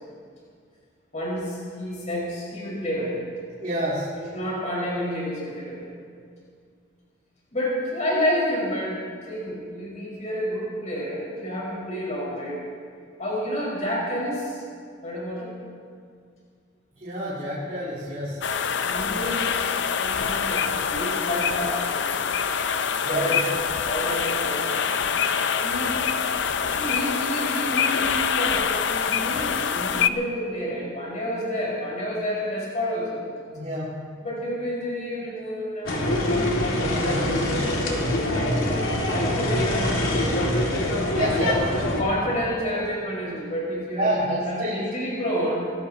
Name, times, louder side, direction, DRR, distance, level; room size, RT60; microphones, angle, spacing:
voice 1, 1.1-3.2 4.3-5.9 7.5-12.6 13.2-14.6 15.0-15.5 18.8-22.3 23.1-23.4 23.8-24.9 25.6-26.0 26.7-33.2 34.2-40.3 41.8-45.7, equal, 35° left, -6 dB, 5.1 m, -30 dB
voice 2, 3.6-4.2 17.0-18.5 23.0-23.5 33.5-34.1 41.1-41.8 42.1-42.2 44.0-44.8, right 1 dB, 40° right, -10 dB, 3.8 m, -28 dB
sound 1, 18.4-30.1, left 7 dB, 60° left, 0.6 m, -25 dB
sound 2, 35.9-42.0, left 1 dB, 85° left, 2.4 m, -24 dB
24.5 x 18.0 x 2.9 m, 2.2 s
head